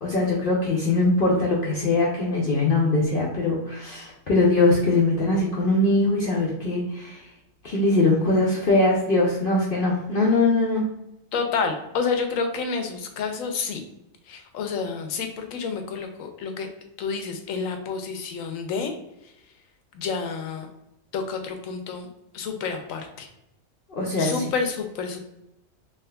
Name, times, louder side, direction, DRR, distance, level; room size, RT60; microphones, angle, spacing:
voice 1, 0.0-7.2 7.6-10.8 23.9-24.4, left 2 dB, 55° left, -4 dB, 0.6 m, -22 dB
voice 2, 11.3-13.8 14.3-16.7 17.0-18.9 19.9-20.7 21.1-22.1 22.3-23.3 24.2-25.2, left 5 dB, 80° left, 5 dB, 1.0 m, -29 dB
3.5 x 2.9 x 2.2 m, 0.87 s
omnidirectional pair, 1.4 m